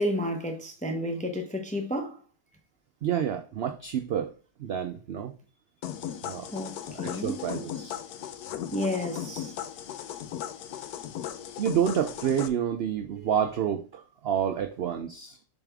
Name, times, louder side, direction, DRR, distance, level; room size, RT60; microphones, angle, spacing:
voice 1, 0.0-2.2 6.5-7.4 8.7-9.5, left 1 dB, 10° left, 0.5 m, -31 dB
voice 2, 3.0-4.3 4.6-5.3 6.2-6.5 6.9-8.0 11.6-15.4, right 9 dB, 75° right, 0.5 m, -29 dB
sound 1, 5.8-12.5, left 10 dB, 85° left, 1.1 m, -37 dB
7.0 x 4.1 x 3.5 m
omnidirectional pair, 1.6 m